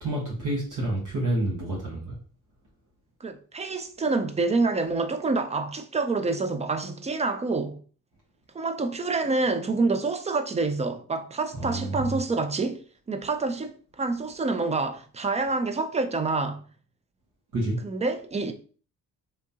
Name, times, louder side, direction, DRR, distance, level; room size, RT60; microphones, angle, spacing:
voice 1, 0.0-2.2 11.5-12.2 17.5-17.8, right 1 dB, 60° right, 1.2 m, -29 dB
voice 2, 3.2-7.8 8.5-12.8 13.1-16.6 17.8-18.5, right 3 dB, 20° right, 0.3 m, -27 dB
3.6 x 2.8 x 2.7 m
cardioid pair, 140°, 35 cm